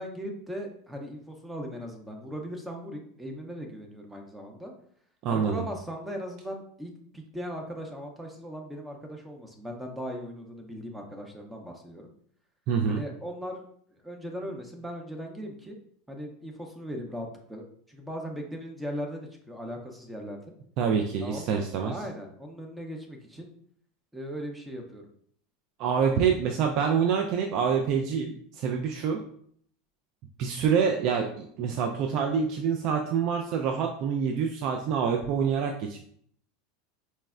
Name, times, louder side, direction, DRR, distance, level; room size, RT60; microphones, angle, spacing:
voice 1, 0.0-4.7 5.3-12.1 12.9-13.6 13.9-15.8 16.1-20.5 21.2-23.5 24.1-25.1, equal, 10° right, 2 dB, 0.6 m, -38 dB
voice 2, 5.2-5.6 12.7-13.0 20.8-21.9 25.8-29.2 30.4-36.0, right 6 dB, 55° right, 3 dB, 0.3 m, -26 dB
4.1 x 2.0 x 2.3 m, 0.63 s
hypercardioid pair, 105°, 0 cm